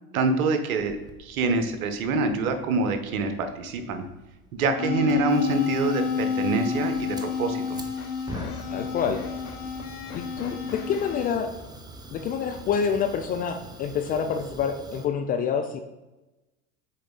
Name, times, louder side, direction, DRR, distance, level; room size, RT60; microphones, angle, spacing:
voice 1, 0.1-4.0 4.5-7.8, right 3 dB, 70° right, 7 dB, 1.1 m, -26 dB
Fire, 0.8-15.1, right 2 dB, 10° right, 0.7 m, -45 dB
sound 1, 4.8-11.3, left 6 dB, 80° left, 0.9 m, -30 dB
voice 2, 8.7-9.2 10.4-11.5 12.1-15.8, left 7 dB, 25° left, 6 dB, 0.3 m, -27 dB
6.6 x 4.5 x 4.0 m, 1.0 s
hypercardioid pair, 85°, 44 cm